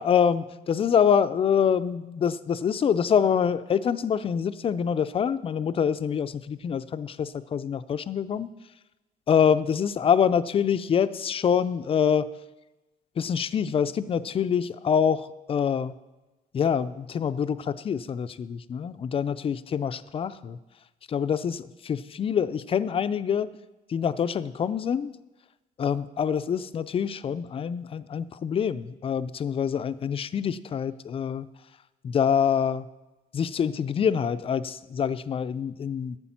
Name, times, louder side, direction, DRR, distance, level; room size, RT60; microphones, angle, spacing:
voice 1, 0.0-8.5 9.3-12.3 13.2-15.9 16.5-20.6 21.1-23.5 23.9-25.1 25.8-31.5 32.0-32.9 33.3-36.2, left 7 dB, 35° left, 14 dB, 0.5 m, -25 dB
11.5 x 8.2 x 5.8 m, 1.1 s
cardioid pair, 110°, 17 cm